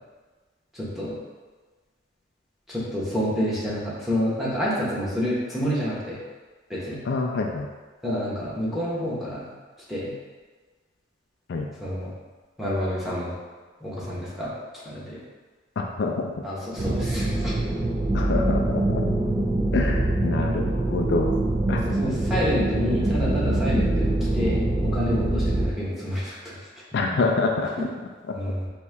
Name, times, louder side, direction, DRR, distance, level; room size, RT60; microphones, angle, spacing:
voice 1, 0.7-1.2 2.7-6.2 6.7-7.0 8.0-9.5 9.9-10.1 11.8-12.1 12.6-13.3 13.8-14.5 14.8-15.2 16.4-17.5 21.8-26.5 28.3-28.7, equal, ahead, -8 dB, 1.1 m, -28 dB
voice 2, 7.1-7.7 11.5-11.7 15.8-16.3 18.1-19.2 19.7-21.4 21.7-21.8 26.9-27.7, left 3 dB, 60° left, 2 dB, 0.4 m, -26 dB
sound 1, 16.8-25.7, right 1 dB, 20° right, 0.4 m, -24 dB
4.1 x 2.8 x 3.4 m, 1.4 s
head